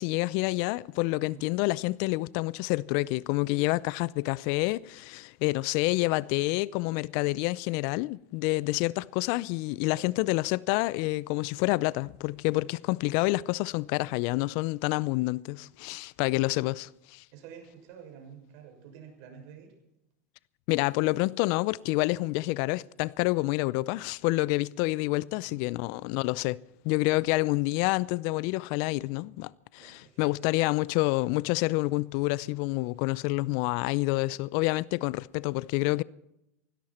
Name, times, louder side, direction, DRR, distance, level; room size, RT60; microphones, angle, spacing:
voice 1, 0.0-17.2 20.7-26.6 26.8-36.0, left 21 dB, 55° left, 0.5 m, -28 dB
voice 2, 17.3-19.7 25.3-25.6 29.8-30.3, right 7 dB, 55° right, 6.6 m, -49 dB
17.5 x 17.0 x 4.4 m
hypercardioid pair, 100°, 8 cm